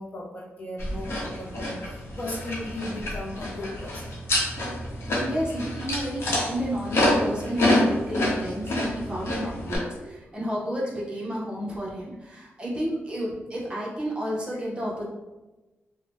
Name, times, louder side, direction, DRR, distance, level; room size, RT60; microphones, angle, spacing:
voice 1, 0.0-4.2 14.5-14.6, left 1 dB, 35° left, -2 dB, 0.5 m, -36 dB
sound 1, 0.8-9.8, left 1 dB, 75° left, 0.8 m, -27 dB
voice 2, 5.2-15.0, equal, 20° right, -4 dB, 0.7 m, -31 dB
2.7 x 2.1 x 3.3 m, 1.1 s
wide cardioid pair, 130°, 4 cm